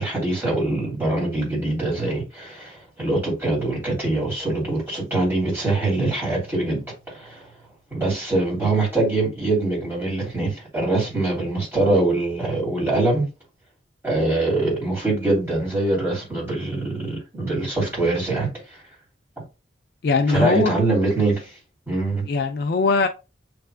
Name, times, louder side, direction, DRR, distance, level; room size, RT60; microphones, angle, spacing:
voice 1, 0.0-7.5 7.9-13.3 14.0-18.8 20.3-21.5 21.9-22.2, right 2 dB, 10° right, 2.9 m, -23 dB
voice 2, 20.0-20.7 22.3-23.1, left 4 dB, 55° left, 0.3 m, -20 dB
6.5 x 3.4 x 2.2 m
head